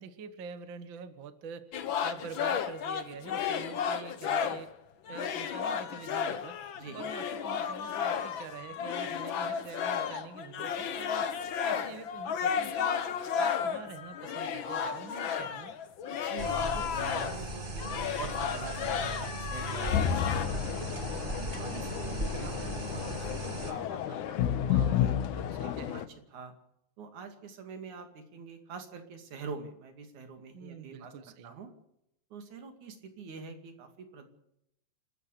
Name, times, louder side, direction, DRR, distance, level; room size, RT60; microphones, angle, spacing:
voice 1, 0.0-4.7 5.1-13.1 13.4-15.7 20.6-21.4 24.7-26.0 30.5-31.5, right 6 dB, 50° right, 11 dB, 1.9 m, -46 dB
sound 1, 1.7-4.7 5.1-17.5 17.8-20.5, left 7 dB, 55° left, 1.6 m, -33 dB
voice 2, 16.1-17.9 18.2-20.6 21.4-25.2 25.6-26.1 26.3-26.5 27.0-31.7 32.3-34.3, right 5 dB, 75° right, 7 dB, 3.8 m, -45 dB
sound 2, 16.4-23.7, right 2 dB, 20° right, 1.7 m, -37 dB
sound 3, 19.9-26.0, left 9 dB, 85° left, 2.5 m, -31 dB
29.5 x 14.0 x 6.8 m, 0.81 s
omnidirectional pair, 3.4 m